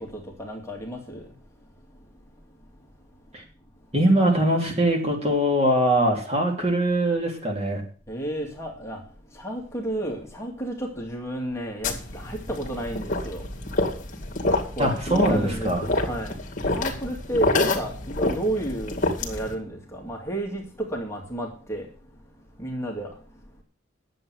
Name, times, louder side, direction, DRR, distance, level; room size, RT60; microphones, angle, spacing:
voice 1, 0.0-1.3 8.1-9.0 9.3-13.5 14.5-21.9 22.6-23.4, right 1 dB, 15° left, 2.3 m, -32 dB
voice 2, 3.9-7.8 14.8-15.8, right 1 dB, 35° right, 3.1 m, -22 dB
sound 1, 11.8-19.5, left 2 dB, 40° left, 2.3 m, -27 dB
10.5 x 7.7 x 7.7 m
head